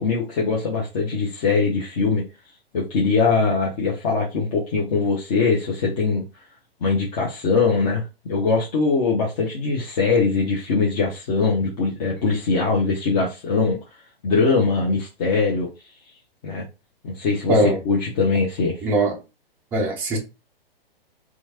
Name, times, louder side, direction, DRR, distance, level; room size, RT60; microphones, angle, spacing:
voice 1, 0.0-2.2 2.7-6.2 6.8-13.8 14.2-15.7 16.4-16.6 17.0-18.8, left 4 dB, 40° left, 1.0 m, -22 dB
voice 2, 18.8-19.2 19.7-20.2, right 1 dB, 5° right, 0.3 m, -20 dB
3.0 x 2.4 x 2.8 m
figure-of-eight pair, 120°, 30 cm